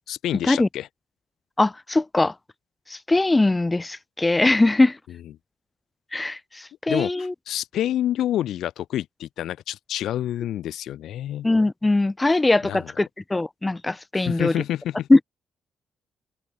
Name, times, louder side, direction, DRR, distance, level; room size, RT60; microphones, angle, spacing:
voice 1, 0.1-0.9 6.9-11.5 12.6-12.9 14.1-15.1, left 12 dB, 75° left, 6.4 m, -28 dB
voice 2, 1.6-2.3 2.9-5.0 6.1-7.3 11.4-14.6 15.1-15.2, left 2 dB, 15° left, 7.4 m, -21 dB
cardioid pair, 105°, 0 cm